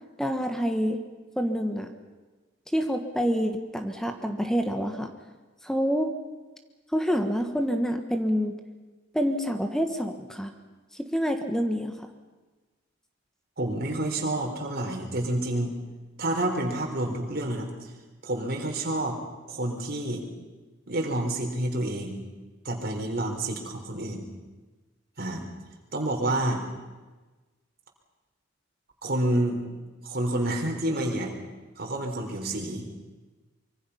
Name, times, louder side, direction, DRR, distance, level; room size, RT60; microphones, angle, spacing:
voice 1, 0.2-1.0 1.4-1.9 2.7-5.1 5.6-6.1 6.9-8.6 9.1-10.5 10.9-12.1, equal, 5° left, 6 dB, 1.4 m, -27 dB
voice 2, 13.6-15.8 16.2-17.9 18.2-19.2 19.5-20.2 20.9-22.2 22.6-24.2 25.2-25.4 25.9-26.6 29.0-29.6 30.0-31.3 31.8-32.9, right 1 dB, 50° right, 2 dB, 4.1 m, -29 dB
25.0 x 23.5 x 5.7 m, 1.2 s
head